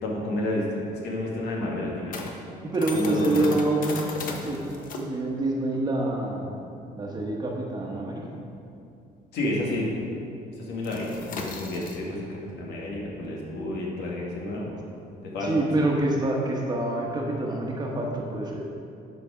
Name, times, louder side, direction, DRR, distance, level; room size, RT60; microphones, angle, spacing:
voice 1, 0.0-2.2 2.9-3.5 9.3-9.9 10.6-14.7 15.2-15.9, left 1 dB, 75° left, -3 dB, 2.2 m, -30 dB
sound 1, 0.6-9.6 9.8-10.1 10.4-16.1, left 3 dB, 50° left, 1.0 m, -39 dB
voice 2, 2.6-4.1 4.4-4.6 4.9-6.6 7.0-8.2 15.4-18.6, right 2 dB, 25° right, -1 dB, 1.3 m, -26 dB
11.5 x 5.2 x 5.0 m, 2.6 s
cardioid pair, 145°, 17 cm